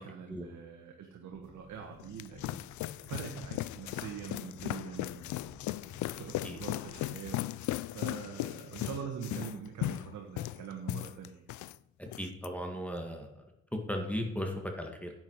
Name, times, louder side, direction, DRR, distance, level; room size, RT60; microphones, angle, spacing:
voice 1, 0.0-2.6 3.1-5.3 5.7-11.4, right 7 dB, 70° right, 2 dB, 1.6 m, -44 dB
sound 1, 1.3-7.1, right 1 dB, 15° right, 4.9 m, -56 dB
sound 2, 1.8-11.8 12.1-12.5, left 15 dB, 75° left, 0.5 m, -37 dB
voice 2, 12.2-13.3 13.9-15.1, equal, 5° left, 2 dB, 1.9 m, -36 dB
10.5 x 9.3 x 4.7 m, 0.89 s
cardioid pair, 90°, 30 cm